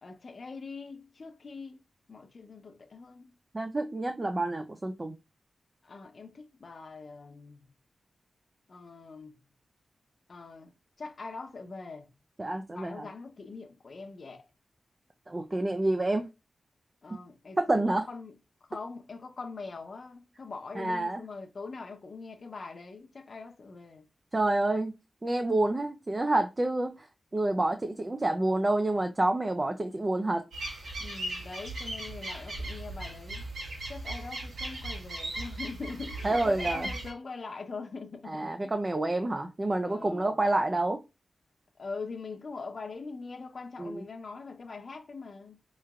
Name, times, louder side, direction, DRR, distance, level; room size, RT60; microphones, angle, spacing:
voice 1, 0.0-1.8 2.1-3.4 5.8-7.7 8.7-9.4 10.3-10.7 11.0-12.1 12.7-14.5 17.0-18.3 18.7-24.1 31.0-33.5 33.9-38.7 39.9-40.3 41.8-45.6, left 4 dB, 60° left, 0.8 m, -43 dB
voice 2, 3.5-5.2 12.4-13.1 15.3-16.3 17.6-18.0 20.8-21.2 24.3-24.9 25.2-26.9 27.3-30.4 36.2-36.9 38.3-41.0 43.8-44.0, right 2 dB, 30° right, 0.5 m, -28 dB
brazilian birds gralhas, 30.5-37.1, right 1 dB, 85° right, 1.4 m, -38 dB
4.4 x 3.0 x 2.4 m
cardioid pair, 70°, 0 cm